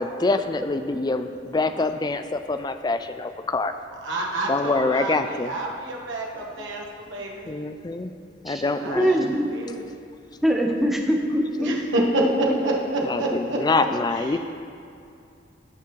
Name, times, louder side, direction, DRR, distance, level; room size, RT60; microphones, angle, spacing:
voice 1, 0.0-3.7 4.5-5.5 6.6-6.7 7.5-8.1 8.4-9.3 13.0-14.4, left 3 dB, 20° left, 9 dB, 0.3 m, -25 dB
voice 2, 4.0-6.8 7.1-7.6 8.8-9.8 11.6-13.6 14.1-14.4, right 1 dB, 80° right, -1 dB, 1.3 m, -27 dB
voice 3, 8.9-9.5 10.4-11.7, equal, ahead, 0 dB, 0.7 m, -22 dB
17.0 x 5.8 x 3.2 m, 2.5 s
head